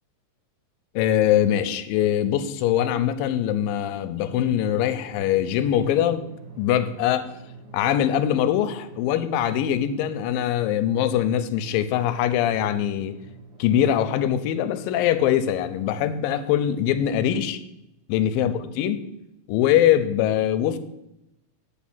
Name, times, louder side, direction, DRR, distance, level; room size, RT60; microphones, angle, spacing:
voice 1, 1.0-6.2 6.6-7.3 7.7-13.2 13.6-17.6 18.1-19.0 19.5-20.8, left 10 dB, 85° left, 12 dB, 2.3 m, -22 dB
Drum, 4.2-17.2, right 5 dB, 60° right, 4.4 m, -46 dB
8.3 x 4.7 x 7.1 m, 0.87 s
omnidirectional pair, 4.0 m